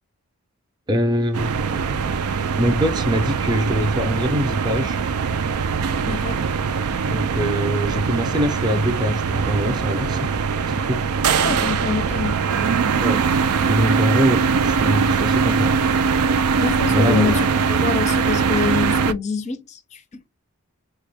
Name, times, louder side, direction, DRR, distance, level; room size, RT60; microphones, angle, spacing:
voice 1, 0.9-1.6 2.6-5.0 7.0-10.3 10.7-11.0 13.0-13.2 13.7-15.7 16.9-17.3, equal, 20° right, 0.6 m, -23 dB
sound 1, 1.3-19.1, right 5 dB, 85° right, 0.4 m, -21 dB
voice 2, 6.1-6.4 11.4-12.4 16.6-20.0, left 5 dB, 30° left, 0.5 m, -25 dB
sound 2, 12.5-12.8 15.5-15.8 18.4-18.7, left 5 dB, 85° left, 0.5 m, -41 dB
3.5 x 2.2 x 3.4 m
head